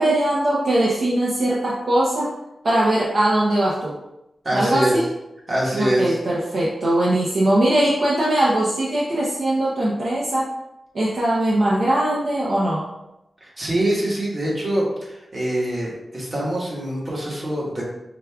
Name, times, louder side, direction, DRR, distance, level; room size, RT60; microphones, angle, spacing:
voice 1, 0.0-2.3 2.6-3.9 4.5-5.0 5.7-10.5 10.9-12.8, right 1 dB, 55° right, -6 dB, 0.7 m, -20 dB
voice 2, 4.4-4.9 5.5-6.2 13.4-17.8, right 1 dB, 35° right, -5 dB, 1.3 m, -24 dB
5.0 x 2.4 x 3.4 m, 0.91 s
wide cardioid pair, 145°, 0 cm